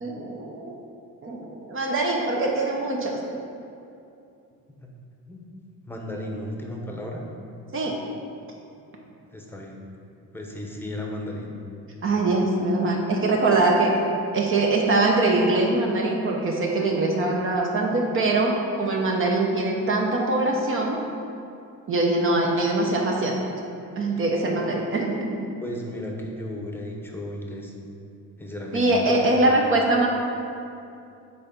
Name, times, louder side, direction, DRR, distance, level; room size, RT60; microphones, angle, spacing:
voice 1, 0.0-0.7 1.2-3.2 7.7-7.9 12.0-14.0 14.3-21.0 21.9-23.3 23.9-25.5 28.7-30.1, right 2 dB, 40° right, -1 dB, 0.9 m, -23 dB
voice 2, 5.8-7.2 9.3-9.8 10.3-11.5 25.6-27.7 28.4-29.4, left 1 dB, 5° left, 0 dB, 0.9 m, -34 dB
8.2 x 4.0 x 5.3 m, 2.6 s
cardioid pair, 135°, 34 cm